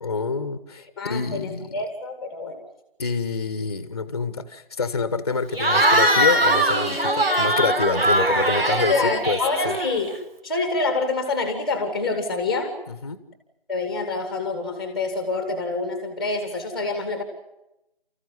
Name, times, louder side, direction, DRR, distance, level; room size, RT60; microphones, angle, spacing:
voice 1, 0.0-1.7 3.0-9.4 9.6-9.8 12.9-13.2, left 4 dB, 25° left, 12 dB, 1.1 m, -27 dB
voice 2, 1.0-2.6 8.9-10.1 10.4-12.8 13.7-17.2, left 3 dB, ahead, 6 dB, 1.5 m, -26 dB
Cheering / Crowd, 5.5-10.2, right 1 dB, 80° right, 4.6 m, -21 dB
30.0 x 14.5 x 9.7 m, 0.89 s
figure-of-eight pair, 160°, 29 cm